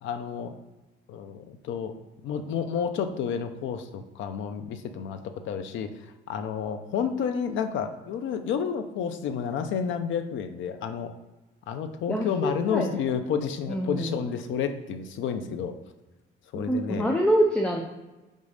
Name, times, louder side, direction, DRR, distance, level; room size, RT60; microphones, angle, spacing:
voice 1, 0.0-0.5 1.1-2.0 2.2-5.2 5.4-5.9 6.3-11.1 11.7-15.7 16.5-17.1, left 7 dB, 80° left, 8 dB, 0.8 m, -30 dB
voice 2, 12.1-12.9 13.7-14.2 16.5-17.8, equal, 5° left, 2 dB, 0.6 m, -25 dB
5.4 x 5.2 x 6.5 m, 1.1 s
cardioid pair, 170°, 20 cm